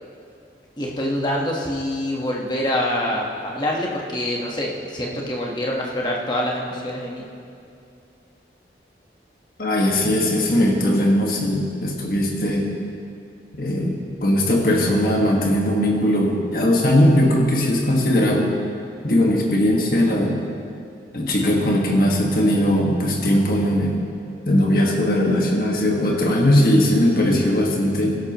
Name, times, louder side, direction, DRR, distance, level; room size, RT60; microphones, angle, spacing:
voice 1, 0.8-7.2, left 1 dB, 25° left, -2 dB, 1.4 m, -25 dB
voice 2, 9.6-12.7 13.6-18.5 19.0-20.4 21.1-24.0 24.5-28.2, left 1 dB, 55° left, -1 dB, 1.7 m, -19 dB
17.0 x 12.0 x 3.1 m, 2.5 s
head